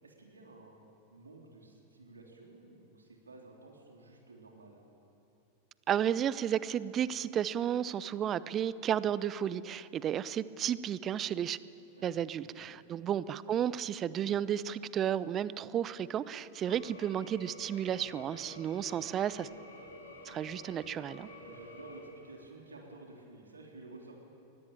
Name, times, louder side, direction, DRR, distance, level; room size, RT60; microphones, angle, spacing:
voice 1, 0.0-0.8 1.1-4.8 11.9-12.6 21.3-24.2, right 2 dB, 75° right, 0 dB, 3.3 m, -52 dB
voice 2, 5.9-11.6 12.0-19.5 20.2-21.3, right 9 dB, 30° right, 18 dB, 0.8 m, -33 dB
sound 1, 16.6-22.0, left 1 dB, 75° left, 6.2 m, -50 dB
23.0 x 20.5 x 8.9 m, 2.9 s
figure-of-eight pair, 90°, 0 cm